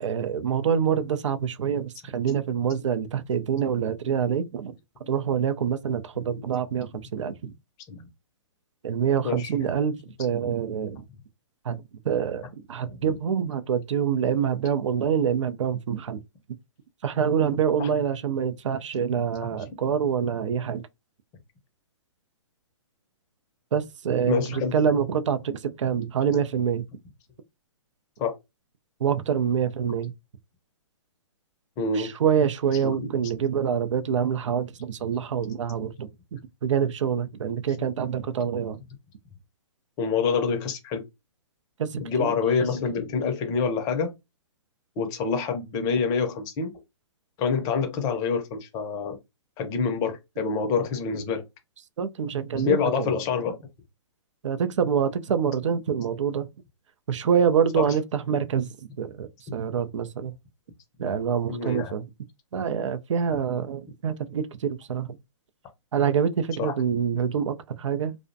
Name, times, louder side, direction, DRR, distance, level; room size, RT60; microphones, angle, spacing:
voice 1, 0.0-4.8 5.1-7.5 8.8-11.0 11.6-11.8 12.0-16.2 17.0-20.8 23.7-26.8 29.0-30.1 31.9-36.1 36.6-38.8 41.8-42.3 52.0-53.1 54.4-56.5 57.1-58.7 59.0-60.3 61.0-62.0 62.5-65.2 65.9-68.2, right 7 dB, 75° right, 0.4 m, -26 dB
voice 2, 9.2-9.6 12.4-12.5 13.1-13.2 17.8-17.9 24.3-24.8 28.2-28.4 31.8-32.1 32.7-33.3 37.7-37.8 40.0-41.0 42.0-44.1 45.0-46.7 47.4-49.2 49.6-51.4 52.5-53.5 57.7-58.0 61.5-61.9 66.5-66.7, left 5 dB, 25° left, 0.5 m, -27 dB
2.5 x 2.0 x 2.6 m
hypercardioid pair, 140°, 16 cm